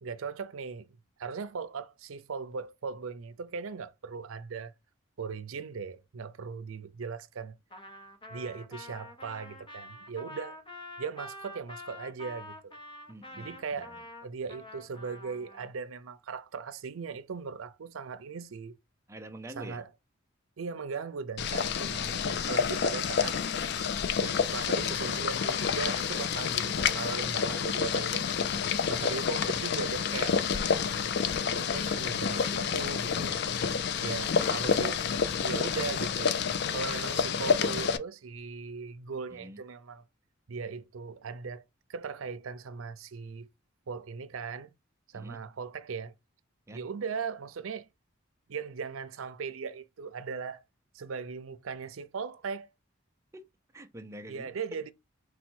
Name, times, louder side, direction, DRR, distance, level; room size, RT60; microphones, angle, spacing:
voice 1, 0.0-4.7 5.2-7.6 8.3-10.6 11.0-12.8 13.4-18.8 19.6-19.9 20.6-23.4 24.2-28.3 28.9-30.4 31.5-33.4 34.0-35.1 35.4-36.4 36.7-40.0 40.5-41.6 41.9-43.5 43.9-44.7 45.1-46.1 46.7-47.9 48.5-50.6 50.9-52.7 54.3-54.9, right 5 dB, 85° right, 0.5 m, -38 dB
Trumpet, 7.7-15.7, left 1 dB, 25° left, 0.8 m, -46 dB
voice 2, 13.1-13.9 19.1-19.8 34.0-34.5 39.3-39.6 45.1-45.4 46.7-46.8 53.3-53.4 53.7-54.5, right 1 dB, 15° right, 0.5 m, -46 dB
Boiling, 21.4-38.0, left 6 dB, 55° left, 0.4 m, -29 dB
4.2 x 2.2 x 4.4 m
head